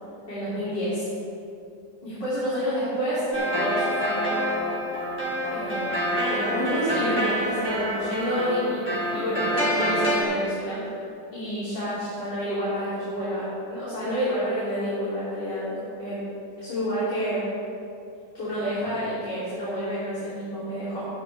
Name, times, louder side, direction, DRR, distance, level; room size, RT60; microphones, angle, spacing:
voice 1, 0.3-1.1 2.0-4.4 5.5-10.8 11.3-16.2 16.6-17.4 18.3-21.1, equal, 75° left, -12 dB, 4.2 m, -29 dB
sound 1, 3.3-10.2, equal, 5° right, 3.0 m, -27 dB
13.5 x 12.5 x 3.6 m, 2.6 s
omnidirectional pair, 1.9 m